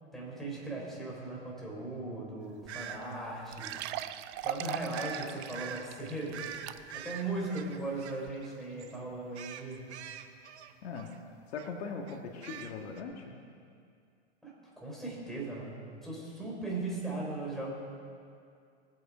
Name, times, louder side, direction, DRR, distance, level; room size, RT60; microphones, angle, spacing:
voice 1, 0.1-3.8 4.4-6.5 6.9-9.9 14.4-17.7, right 2 dB, ahead, -5 dB, 4.2 m, -38 dB
sound 1, 2.6-2.7 3.0-3.1 3.5-7.1 7.6-7.7 8.3-8.4, right 13 dB, 30° right, 0.4 m, -40 dB
sound 2, 2.7-3.0 3.6-3.9 4.9-5.3 5.5-5.8 6.3-8.5 8.8-9.0 9.3-11.2 11.6-11.7 12.1-13.0, right 9 dB, 75° right, 1.0 m, -44 dB
voice 2, 11.5-13.4, left 5 dB, 70° left, 2 dB, 1.6 m, -40 dB
20.0 x 8.2 x 5.0 m, 2.3 s
hypercardioid pair, 120°, 34 cm